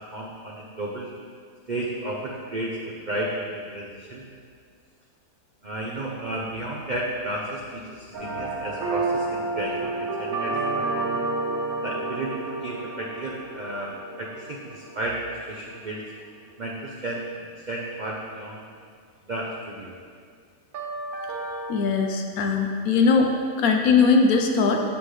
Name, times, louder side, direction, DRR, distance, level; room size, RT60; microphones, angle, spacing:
voice 1, 0.1-1.1 1.7-4.2 5.6-11.2 11.8-13.9 14.2-16.0 16.6-18.6 19.3-19.9, right 1 dB, 75° right, -3 dB, 0.4 m, -33 dB
sound 1, 8.1-15.4 20.7-21.7, right 3 dB, 60° right, 1.4 m, -30 dB
voice 2, 21.7-23.3 23.6-24.8, left 4 dB, 70° left, 3 dB, 1.0 m, -20 dB
8.5 x 5.7 x 3.2 m, 2.1 s
omnidirectional pair, 1.8 m